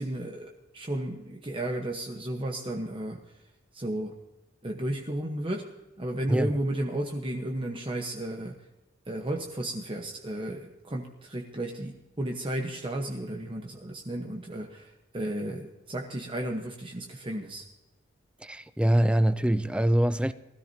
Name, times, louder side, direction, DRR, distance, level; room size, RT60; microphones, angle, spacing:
voice 1, 0.0-3.2 3.7-4.1 4.6-5.6 6.0-8.5 9.1-17.6, right 1 dB, 25° right, 1.0 m, -33 dB
voice 2, 18.4-20.3, right 1 dB, 5° right, 0.3 m, -24 dB
19.5 x 13.5 x 2.8 m
head